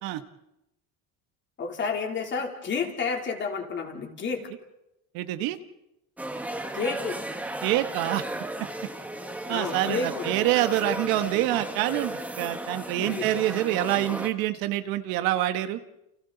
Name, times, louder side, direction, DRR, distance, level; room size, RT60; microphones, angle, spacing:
voice 1, 1.6-4.5 6.7-7.2 9.5-10.3 13.0-13.3, left 5 dB, 30° left, 2 dB, 3.4 m, -30 dB
voice 2, 5.1-5.6 7.6-8.2 9.5-15.8, right 14 dB, 70° right, 10 dB, 1.5 m, -26 dB
sound 1, 6.2-14.3, right 1 dB, 5° right, 1.4 m, -35 dB
29.5 x 29.5 x 4.0 m, 0.87 s
cardioid pair, 160°, 37 cm